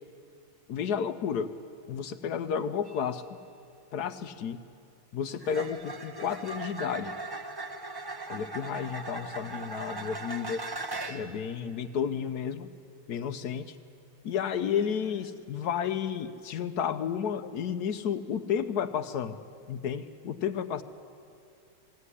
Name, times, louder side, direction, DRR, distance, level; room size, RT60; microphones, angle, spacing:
voice 1, 0.7-1.5 1.9-3.2 3.9-4.6 5.1-7.1 8.3-10.6 11.1-12.7 13.1-13.7 14.2-19.4 19.7-20.8, left 7 dB, 65° left, 11 dB, 1.1 m, -32 dB
sound 1, 2.9-3.1 5.4-11.4 15.0-15.3, right 3 dB, 25° right, 0.5 m, -39 dB
21.0 x 16.5 x 9.8 m, 2.5 s
omnidirectional pair, 2.3 m